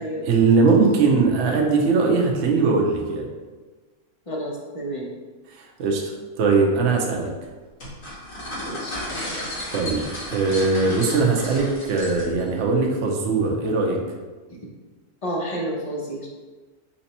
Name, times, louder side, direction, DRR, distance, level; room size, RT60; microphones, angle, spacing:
voice 1, 0.2-3.3 5.5-7.3 9.7-14.0, right 4 dB, 60° right, 0 dB, 0.9 m, -20 dB
voice 2, 4.3-5.1 8.7-9.0 15.2-16.3, equal, 45° left, -3 dB, 0.4 m, -30 dB
sound 1, 7.8-12.5, left 1 dB, 60° left, 1.9 m, -33 dB
4.2 x 2.8 x 4.1 m, 1.3 s
omnidirectional pair, 1.6 m